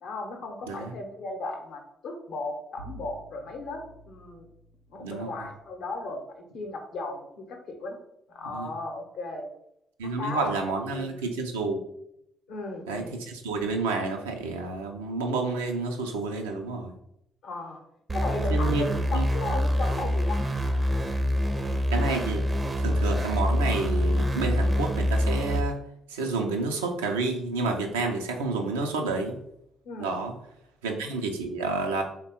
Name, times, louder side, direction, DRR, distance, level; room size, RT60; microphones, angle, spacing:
voice 1, 0.0-4.5 4.9-8.0 8.3-9.5 10.0-11.1 12.5-13.2 17.4-17.8 18.1-20.6 29.8-30.1, left 2 dB, 65° left, 3 dB, 0.7 m, -36 dB
Bowed string instrument, 2.8-5.8, right 1 dB, 90° left, 0.3 m, -49 dB
voice 2, 5.0-5.3 8.5-8.7 10.0-11.8 12.9-16.9 18.5-19.2 21.9-22.4 22.8-25.8 26.1-29.4 30.0-30.3 30.8-32.0, right 3 dB, 85° right, 3 dB, 0.4 m, -29 dB
sound 1, 18.1-25.6, equal, 30° right, 0.5 m, -25 dB
3.5 x 2.2 x 4.1 m, 0.78 s
hypercardioid pair, 40°, 0 cm